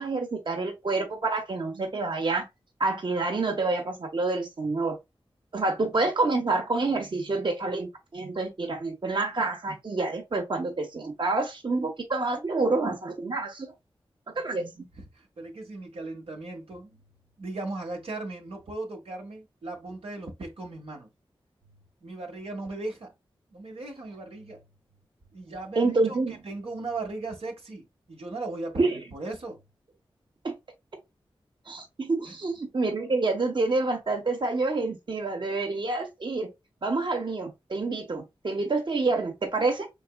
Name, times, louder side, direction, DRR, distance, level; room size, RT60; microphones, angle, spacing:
voice 1, 0.0-2.5 2.8-5.0 5.5-13.7 14.3-14.9 25.7-26.4 28.8-29.0 30.4-30.5 31.6-36.5 36.8-39.9, right 3 dB, 55° right, 1.3 m, -28 dB
voice 2, 14.9-17.0 17.4-21.1 22.0-23.1 23.5-24.6 25.3-26.2 26.4-29.6 32.2-32.3, right 2 dB, 85° right, 1.5 m, -37 dB
4.6 x 3.6 x 2.3 m
cardioid pair, 45°, 10 cm